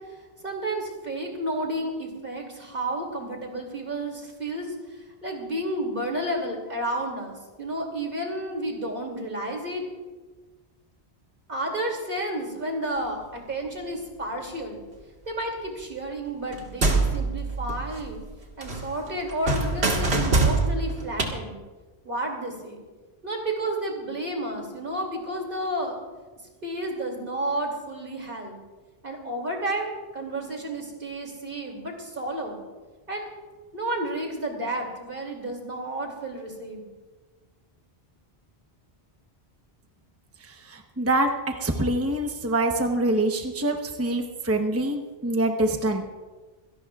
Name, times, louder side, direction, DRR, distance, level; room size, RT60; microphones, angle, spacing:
voice 1, 0.4-9.8 11.5-14.8 15.2-18.2 18.6-21.6 22.0-22.8 23.2-26.0 26.6-28.6 29.0-32.6 33.1-33.3 33.7-36.9, right 1 dB, 55° right, 1 dB, 3.0 m, -31 dB
sound 1, 16.5-18.3 18.6-21.3, right 3 dB, 85° right, 2.0 m, -24 dB
voice 2, 40.7-46.0, right 1 dB, 15° right, 3 dB, 1.0 m, -25 dB
26.0 x 17.5 x 2.4 m, 1.3 s
omnidirectional pair, 1.1 m